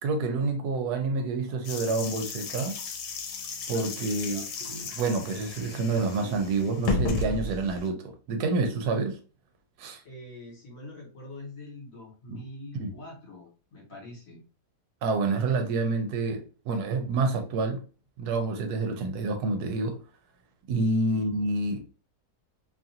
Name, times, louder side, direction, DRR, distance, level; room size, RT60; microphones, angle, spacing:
voice 1, 0.0-2.7 3.7-9.2 9.8-10.0 12.3-12.4 12.8-12.9 15.0-17.8 18.2-20.0 20.7-21.9, right 3 dB, 75° right, 1.1 m, -28 dB
sound 1, 1.6-7.9, left 4 dB, 90° left, 1.2 m, -34 dB
voice 2, 4.2-4.5 10.0-14.4 21.1-21.3, left 2 dB, 60° left, 1.5 m, -45 dB
2.9 x 2.4 x 2.6 m
omnidirectional pair, 1.7 m